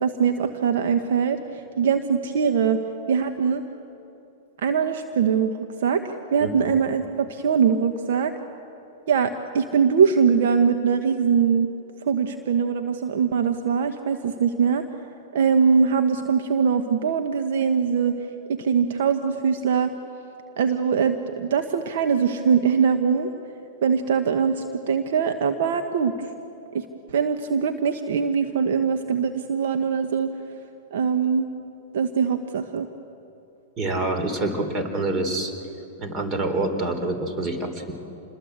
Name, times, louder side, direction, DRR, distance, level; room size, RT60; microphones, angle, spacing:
voice 1, 0.0-2.8 3.1-3.6 4.6-5.5 5.8-8.3 9.1-11.7 12.0-14.8 15.3-18.2 18.5-19.9 20.6-23.3 23.8-26.3 26.7-30.3 30.9-31.5 31.9-32.9, right 6 dB, 70° right, 7 dB, 1.2 m, -22 dB
voice 2, 33.8-35.5 36.0-37.9, right 2 dB, 30° right, 7 dB, 3.7 m, -26 dB
27.5 x 21.5 x 8.1 m, 2.8 s
hypercardioid pair, 115°, 0 cm